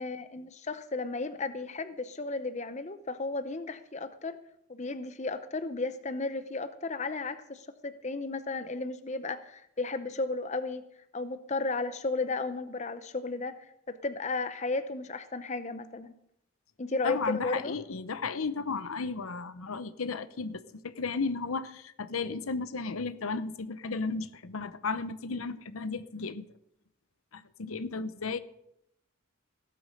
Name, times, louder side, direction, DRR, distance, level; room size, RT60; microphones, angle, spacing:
voice 1, 0.0-4.4 4.7-10.8 11.1-16.1 16.8-17.8, left 3 dB, 35° left, 11 dB, 0.7 m, -34 dB
voice 2, 17.0-26.4 27.3-28.4, left 4 dB, 85° left, 13 dB, 0.9 m, -34 dB
16.5 x 8.6 x 6.6 m, 0.77 s
head